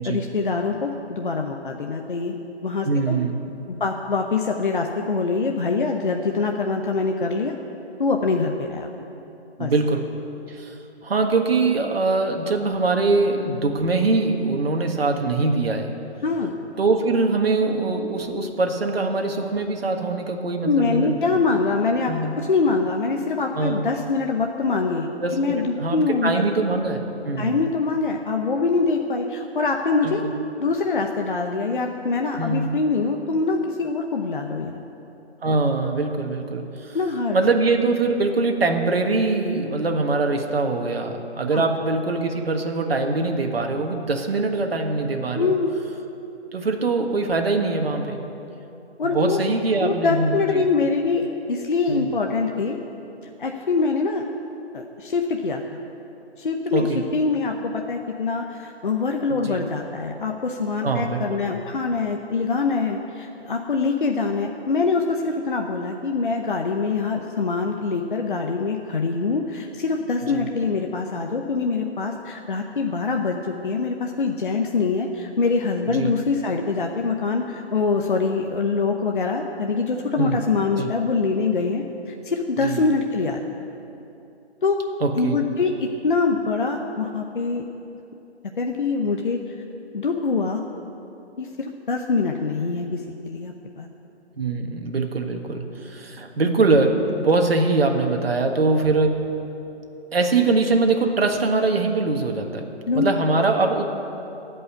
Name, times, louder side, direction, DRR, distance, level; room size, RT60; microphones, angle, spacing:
voice 1, 0.0-2.4 2.6-3.2 3.7-7.5 8.0-8.9 9.6-9.7 16.2-16.5 20.6-26.5 27.4-30.2 30.6-34.8 36.9-37.4 41.5-41.7 45.3-45.7 49.0-49.4 49.8-52.8 53.4-54.2 54.7-55.6 56.4-83.4 84.6-84.8 85.2-87.7 88.6-89.5 89.9-90.6 91.4-93.9 102.9-103.1, left 4 dB, 50° left, 2 dB, 0.8 m, -24 dB
voice 2, 2.8-3.4 9.6-10.1 10.5-10.7 11.0-15.9 16.8-21.4 22.1-22.3 23.5-23.8 25.2-27.0 27.2-27.6 30.0-30.1 32.4-32.7 35.4-37.0 37.3-45.5 46.5-48.2 49.0-50.6 51.9-52.1 56.7-57.0 59.3-59.6 60.8-61.4 70.3-70.5 75.9-76.1 80.2-80.4 80.8-80.9 82.6-82.9 85.0-85.4 94.4-99.2 100.1-102.6 102.9-103.8, right 3 dB, 60° right, 3 dB, 1.6 m, -23 dB
16.5 x 5.5 x 9.7 m, 2.9 s
figure-of-eight pair, 170°, 34 cm